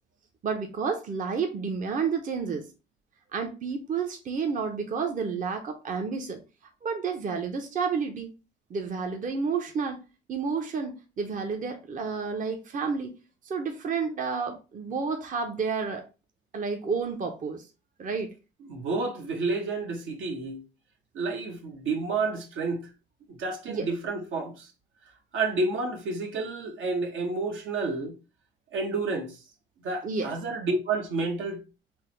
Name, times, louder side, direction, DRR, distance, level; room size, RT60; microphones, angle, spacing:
voice 1, 0.4-2.7 3.3-6.4 6.8-8.3 8.7-10.0 10.3-13.1 13.5-16.0 16.5-17.7 18.0-18.3 23.7-23.9 30.0-30.3, right 5 dB, 40° right, 0.6 m, -30 dB
voice 2, 18.6-20.6 21.1-22.9 23.3-24.7 25.3-28.1 28.7-29.4 29.8-31.6, right 3 dB, 75° right, 1.0 m, -30 dB
3.4 x 2.0 x 4.3 m
cardioid pair, 90°, 20 cm